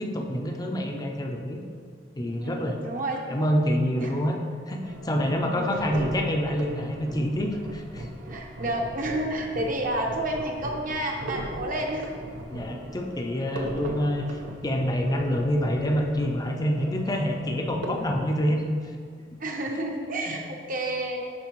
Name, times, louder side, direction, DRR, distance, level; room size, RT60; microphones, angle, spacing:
voice 1, 0.0-1.6 2.1-2.8 3.3-4.4 4.6-8.1 12.5-18.6 20.3-20.4, equal, 20° left, 2 dB, 0.5 m, -27 dB
voice 2, 2.4-3.2 4.0-4.1 5.4-5.7 8.3-12.1 13.8-13.9 19.4-21.2, right 1 dB, 50° right, 1 dB, 1.0 m, -30 dB
sound 1, 4.8-18.3, right 1 dB, 85° right, 0.8 m, -38 dB
11.0 x 4.6 x 3.1 m, 2.1 s
head